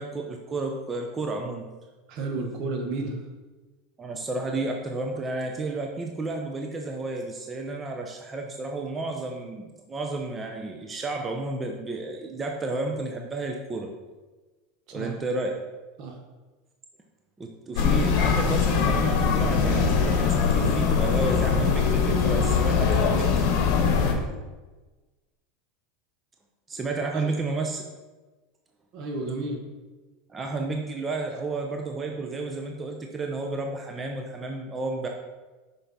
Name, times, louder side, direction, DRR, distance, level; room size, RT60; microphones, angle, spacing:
voice 1, 0.0-1.6 4.0-13.9 14.9-15.6 17.4-23.5 26.7-27.8 30.3-35.1, right 3 dB, 25° right, 2 dB, 0.8 m, -32 dB
voice 2, 2.1-3.1 14.9-15.1 16.0-16.2 27.1-27.3 28.9-29.6, right 3 dB, 55° right, 2 dB, 1.3 m, -32 dB
sound 1, 17.8-24.1, left 5 dB, 60° left, 1.1 m, -22 dB
5.7 x 5.6 x 4.1 m, 1.2 s
hypercardioid pair, 95°, 0 cm